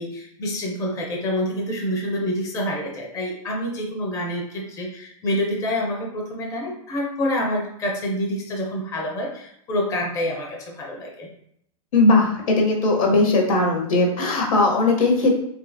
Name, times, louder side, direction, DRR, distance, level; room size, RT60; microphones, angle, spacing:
voice 1, 0.0-11.3, equal, 15° left, -1 dB, 0.4 m, -27 dB
voice 2, 11.9-15.4, left 2 dB, 65° left, 1 dB, 0.8 m, -19 dB
2.8 x 2.3 x 2.5 m, 0.71 s
hypercardioid pair, 115°, 18 cm